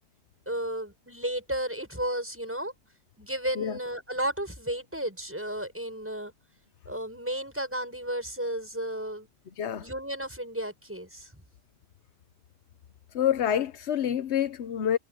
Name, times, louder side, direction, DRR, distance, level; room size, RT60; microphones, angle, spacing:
voice 1, 0.5-2.7 3.2-6.3 6.9-9.3 9.8-11.3, right 1 dB, 10° right, 6.9 m, -33 dB
voice 2, 9.6-9.9 13.1-15.0, left 9 dB, 80° left, 1.1 m, -27 dB
omnidirectional pair, 1.1 m